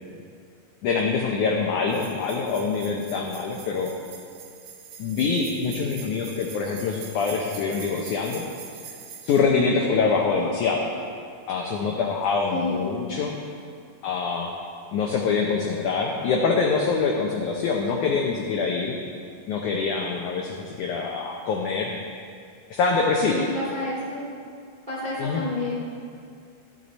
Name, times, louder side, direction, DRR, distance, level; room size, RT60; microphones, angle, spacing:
voice 1, 0.8-3.9 5.0-8.5 9.2-10.8 11.5-13.4 14.0-14.5 14.9-19.0 19.5-21.9 22.7-23.5 25.2-25.4, left 5 dB, 90° left, 0 dB, 1.7 m, -25 dB
sound 1, 1.9-9.4, right 7 dB, 80° right, 3.0 m, -44 dB
voice 2, 12.5-12.8 23.3-24.3 24.9-25.7, left 2 dB, 25° right, -6 dB, 1.1 m, -30 dB
13.5 x 10.5 x 4.1 m, 2.3 s
omnidirectional pair, 4.6 m